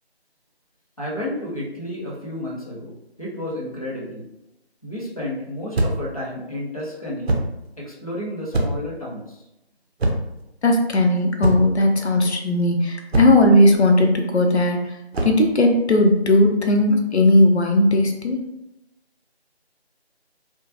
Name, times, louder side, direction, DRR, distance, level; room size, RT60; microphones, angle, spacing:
voice 1, 1.0-2.9 3.2-4.2 4.8-7.4 7.8-9.4, left 1 dB, 35° left, -5 dB, 0.6 m, -31 dB
sound 1, 5.7-6.2 7.3-7.6 8.5-8.9 10.0-10.4 11.4-11.8 13.1-13.5 15.1-15.5, right 1 dB, 70° right, 0.6 m, -23 dB
voice 2, 10.6-14.8 15.2-18.4, left 1 dB, 80° left, 3 dB, 0.6 m, -17 dB
2.8 x 2.1 x 2.5 m, 0.90 s
figure-of-eight pair, 165°, 33 cm